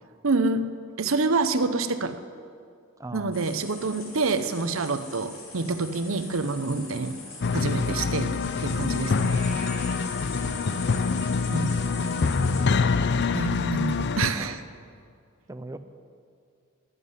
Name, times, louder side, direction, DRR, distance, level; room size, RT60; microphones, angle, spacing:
voice 1, 0.2-0.7 1.0-2.2 3.1-7.1 7.5-8.3 8.6-9.3 11.5-11.7 13.3-14.6, right 3 dB, 75° right, 11 dB, 0.8 m, -27 dB
voice 2, 3.0-3.4 10.4-10.8 11.8-12.7 14.0-14.6 15.5-15.8, right 2 dB, 15° right, 9 dB, 0.5 m, -41 dB
sound 1, 3.3-12.6, left 3 dB, 90° left, 3.3 m, -42 dB
sound 2, 6.6-13.4, left 1 dB, 5° left, 2.8 m, -50 dB
sound 3, 7.4-14.3, left 4 dB, 55° left, 0.5 m, -25 dB
11.0 x 9.6 x 9.8 m, 2.3 s
head